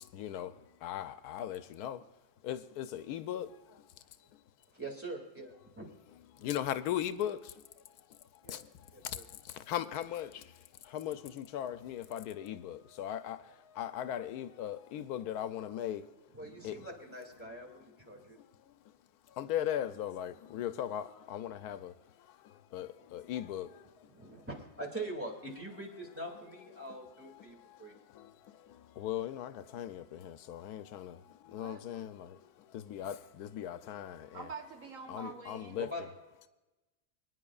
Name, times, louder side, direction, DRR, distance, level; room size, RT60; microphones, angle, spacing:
voice 1, 0.1-0.5 0.8-2.0 2.4-3.5 6.4-7.4 8.5-8.6 9.7-10.3 10.9-13.4 13.8-16.0 16.6-16.8 19.4-21.9 22.7-23.7 29.0-31.2 31.5-32.4 32.7-34.5 35.1-35.9, left 11 dB, 90° left, 1.1 m, -38 dB
voice 2, 4.7-5.9 8.4-8.6 8.9-9.2 16.3-18.4 24.1-27.9 35.2-35.4 35.7-36.1, right 1 dB, 10° right, 2.2 m, -43 dB
voice 3, 31.5-31.8 34.3-36.0, right 4 dB, 60° right, 1.3 m, -46 dB
25.0 x 9.8 x 2.4 m
omnidirectional pair, 1.6 m